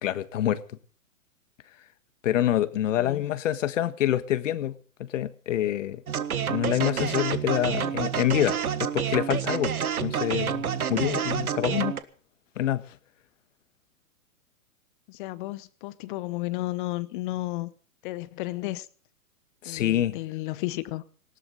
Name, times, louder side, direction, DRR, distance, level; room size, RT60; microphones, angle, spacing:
voice 1, 0.0-0.6 2.2-6.0 6.5-9.7 10.0-12.0 12.6-12.9 19.6-20.2, left 12 dB, 60° left, 1.5 m, -26 dB
sound 1, 6.1-12.0, right 8 dB, 80° right, 1.6 m, -28 dB
voice 2, 15.1-17.7 18.0-18.9 19.6-21.0, left 18 dB, 35° left, 1.0 m, -33 dB
19.5 x 17.5 x 3.9 m
hypercardioid pair, 130°, 43 cm